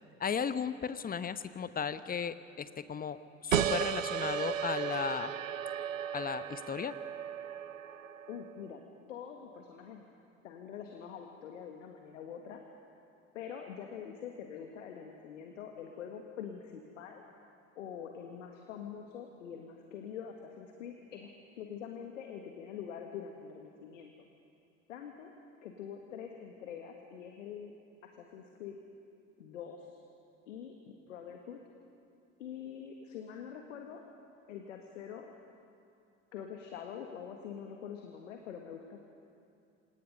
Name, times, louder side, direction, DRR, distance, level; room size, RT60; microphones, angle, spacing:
voice 1, 0.2-5.3 6.1-7.0, left 7 dB, 20° left, 13 dB, 1.0 m, -35 dB
sound 1, 3.5-8.7, right 9 dB, 80° right, 0.7 m, -35 dB
voice 2, 8.3-8.8 9.1-10.0 10.4-12.6 13.3-17.2 17.8-21.3 21.6-24.1 24.9-25.3 25.6-27.7 28.0-28.8 29.4-30.0 30.5-31.6 32.4-34.0 34.5-35.3 36.3-39.0, left 8 dB, 70° left, 3 dB, 1.8 m, -45 dB
28.5 x 25.5 x 5.5 m, 2.5 s
figure-of-eight pair, 60°, 39 cm